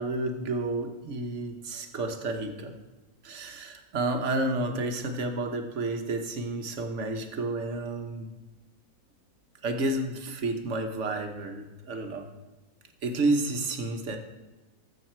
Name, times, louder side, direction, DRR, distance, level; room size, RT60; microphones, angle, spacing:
voice 1, 0.0-2.7 3.2-8.3 9.6-12.3 13.0-14.2, right 2 dB, 45° right, 5 dB, 1.2 m, -30 dB
14.5 x 6.5 x 4.5 m, 1.1 s
omnidirectional pair, 2.0 m